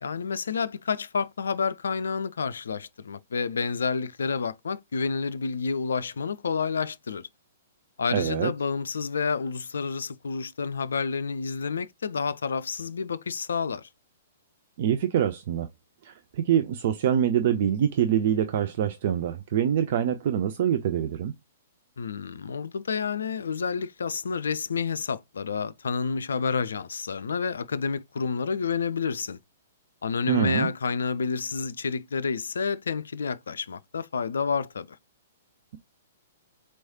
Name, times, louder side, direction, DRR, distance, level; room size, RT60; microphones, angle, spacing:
voice 1, 0.0-7.3 8.0-13.9 22.0-29.4 30.0-35.0, left 5 dB, 65° left, 0.4 m, -29 dB
voice 2, 8.1-8.5 14.8-15.7 16.0-21.3 30.3-30.7, right 9 dB, 50° right, 0.4 m, -25 dB
4.3 x 3.1 x 2.6 m
figure-of-eight pair, 115°, 0 cm